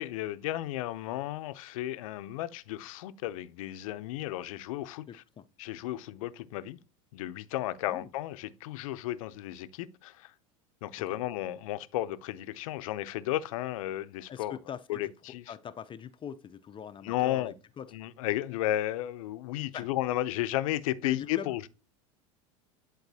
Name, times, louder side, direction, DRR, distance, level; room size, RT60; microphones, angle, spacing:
voice 1, 0.0-5.2 5.6-6.8 7.1-10.3 10.8-14.6 14.9-15.4 17.0-17.5 17.9-21.7, left 14 dB, 75° left, 0.6 m, -33 dB
voice 2, 5.1-5.4 7.9-8.1 14.3-15.1 15.5-17.9 19.7-19.9 21.0-21.6, left 8 dB, 30° left, 0.6 m, -42 dB
10.5 x 3.9 x 2.7 m
hypercardioid pair, 90°, 18 cm